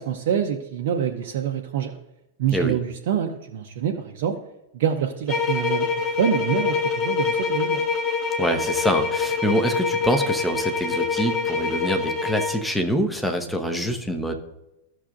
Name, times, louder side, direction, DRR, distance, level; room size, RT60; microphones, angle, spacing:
voice 1, 0.0-1.9 2.4-4.4 4.7-7.9, right 9 dB, 55° right, 2 dB, 0.7 m, -26 dB
sound 1, 5.3-12.6, left 5 dB, 30° left, 1.5 m, -25 dB
voice 2, 8.4-14.3, equal, 5° left, 4 dB, 1.0 m, -25 dB
13.5 x 6.4 x 2.6 m, 0.88 s
figure-of-eight pair, 90°, 0 cm